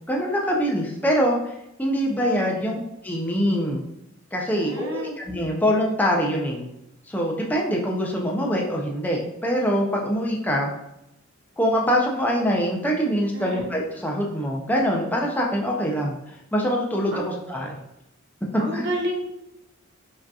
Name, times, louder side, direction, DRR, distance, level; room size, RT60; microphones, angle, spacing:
voice 1, 0.1-2.8 3.0-3.8 4.3-6.6 7.1-10.7 11.6-16.2 16.5-17.8 18.5-18.9, equal, 10° left, -1 dB, 0.4 m, -24 dB
voice 2, 2.2-2.7 4.5-5.2 13.3-13.7 17.1-17.3 18.6-19.2, right 1 dB, 60° right, 0 dB, 0.7 m, -31 dB
4.9 x 2.7 x 2.3 m, 0.85 s
head